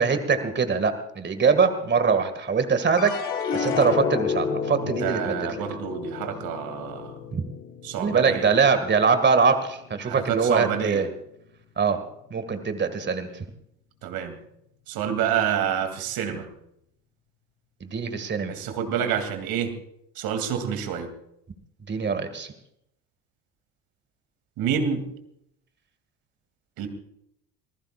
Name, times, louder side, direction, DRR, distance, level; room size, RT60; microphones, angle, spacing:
voice 1, 0.0-3.1 3.5-5.5 7.3-7.4 8.0-11.1 11.8-12.0 12.3-13.5 17.8-18.5 21.9-22.5, right 5 dB, 25° right, 9 dB, 2.1 m, -23 dB
sound 1, 3.0-9.4 9.9-10.5, left 6 dB, 45° left, 3.4 m, -31 dB
voice 2, 5.0-7.1 7.8-8.5 10.0-11.0 14.0-14.4 14.9-16.5 18.5-19.7 20.2-21.1 24.6-25.1 26.8-26.9, right 8 dB, 50° right, 7 dB, 2.9 m, -28 dB
25.5 x 20.0 x 2.5 m, 0.76 s
figure-of-eight pair, 60°, 44 cm